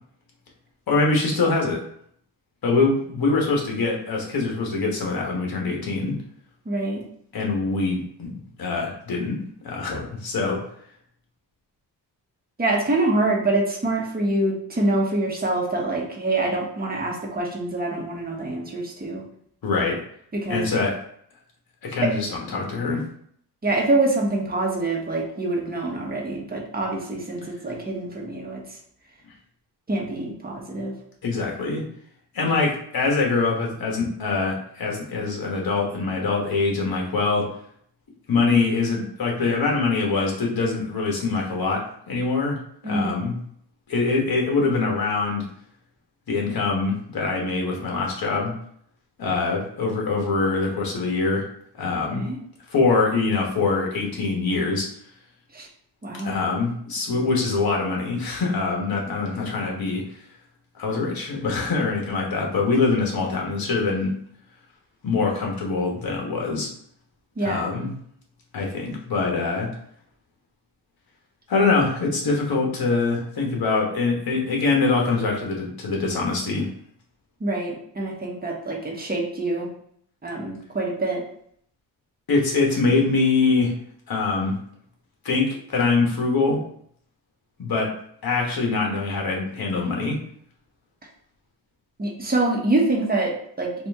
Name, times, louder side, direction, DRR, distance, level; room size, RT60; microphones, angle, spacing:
voice 1, 0.9-1.8 2.6-6.1 7.3-10.6 19.6-20.0 20.5-21.0 21.8-23.0 31.2-31.8 32.3-37.5 38.3-42.6 42.8-43.3 43.9-45.5 46.3-48.5 49.2-51.4 51.8-52.2 52.7-54.9 56.2-60.0 60.7-64.2 65.0-66.7 67.4-67.9 68.5-69.7 71.5-76.7 82.3-83.7 84.1-84.5 85.2-86.6 87.6-87.9 88.2-90.2, left 3 dB, 55° left, -1 dB, 1.4 m, -24 dB
voice 2, 6.6-7.0 12.6-19.2 20.3-20.6 22.0-22.1 23.6-28.6 29.9-30.9 42.8-43.1 52.1-52.4 55.5-55.7 56.0-56.4 67.4-67.7 77.4-79.7 80.2-81.2 92.0-93.9, right 2 dB, 20° right, -1 dB, 1.1 m, -25 dB
4.2 x 2.6 x 3.5 m, 0.65 s
cardioid pair, 105°, 42 cm